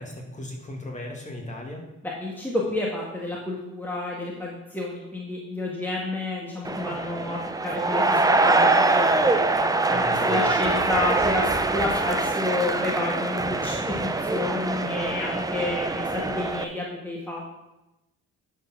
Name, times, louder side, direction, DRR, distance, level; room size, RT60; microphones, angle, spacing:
voice 1, 0.0-1.8 9.9-10.5, left 1 dB, 25° left, 0 dB, 2.4 m, -36 dB
voice 2, 2.0-9.4 9.9-17.5, left 2 dB, 5° left, -4 dB, 1.7 m, -30 dB
sound 1, 6.6-16.6, right 2 dB, 10° right, 0.6 m, -24 dB
11.0 x 4.6 x 6.0 m, 0.97 s
cardioid pair, 90°, 30 cm